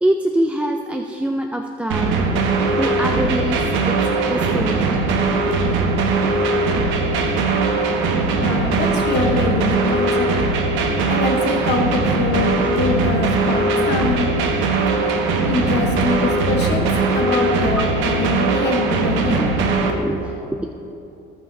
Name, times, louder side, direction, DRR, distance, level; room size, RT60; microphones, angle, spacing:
voice 1, 0.0-2.3 2.8-4.8 19.9-20.7, right 1 dB, 5° right, 2 dB, 0.4 m, -24 dB
sound 1, 1.9-19.9, right 3 dB, 85° right, 1.0 m, -20 dB
voice 2, 8.4-10.3 11.1-14.4 15.4-16.9 17.1-19.5, left 4 dB, 60° left, 2 dB, 1.0 m, -23 dB
17.0 x 5.8 x 2.7 m, 2.8 s
cardioid pair, 100°, 19 cm